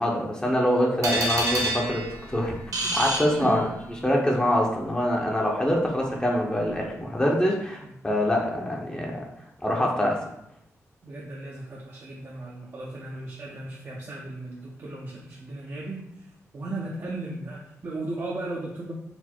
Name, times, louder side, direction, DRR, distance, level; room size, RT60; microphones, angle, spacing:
voice 1, 0.0-2.5 2.9-3.7 4.0-9.2 9.6-10.2, equal, 15° left, -2 dB, 0.7 m, -24 dB
sound 1, 1.0-4.0, right 1 dB, 80° right, 0.8 m, -29 dB
voice 2, 3.4-3.8 7.8-8.1 11.0-18.9, right 2 dB, 50° right, -4 dB, 0.7 m, -36 dB
4.2 x 2.0 x 4.4 m, 0.76 s
cardioid pair, 90°, 6 cm